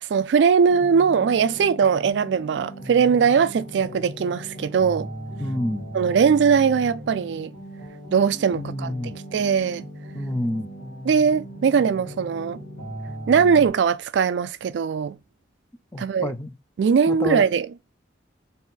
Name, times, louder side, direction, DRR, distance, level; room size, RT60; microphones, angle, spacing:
voice 1, 0.1-5.1 5.9-7.5 8.1-9.8 11.0-12.6 13.3-15.2 16.0-16.3 16.8-17.7, right 6 dB, 75° right, 0.3 m, -20 dB
sound 1, 0.7-13.7, right 1 dB, 55° left, 2.2 m, -38 dB
voice 2, 5.4-5.9 8.5-9.1 10.1-10.7 15.9-16.5 17.1-17.5, left 1 dB, 15° left, 0.5 m, -28 dB
4.1 x 2.6 x 3.6 m
head